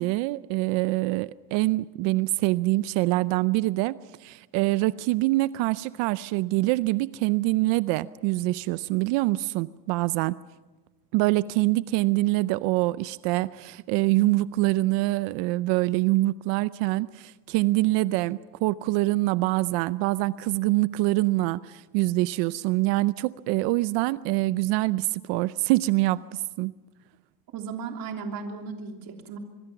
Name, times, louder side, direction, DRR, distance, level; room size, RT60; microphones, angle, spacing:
voice 1, 0.0-10.4 11.1-26.7, right 19 dB, 65° right, 17 dB, 0.7 m, -25 dB
voice 2, 27.5-29.4, right 5 dB, 50° right, 3 dB, 3.3 m, -35 dB
25.0 x 23.5 x 6.0 m, 1.2 s
cardioid pair, 130°, 46 cm